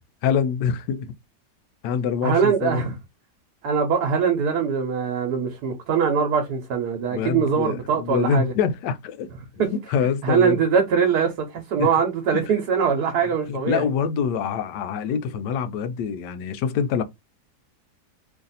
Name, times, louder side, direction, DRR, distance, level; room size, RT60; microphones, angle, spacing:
voice 1, 0.2-1.1 1.8-2.9 7.1-9.3 9.7-10.6 11.8-11.9 12.3-12.4 13.5-17.0, left 7 dB, 85° left, 1.2 m, -25 dB
voice 2, 2.2-2.9 3.6-8.5 9.6-9.7 10.2-13.9, right 6 dB, 70° right, 1.3 m, -22 dB
3.1 x 2.5 x 3.9 m
omnidirectional pair, 1.8 m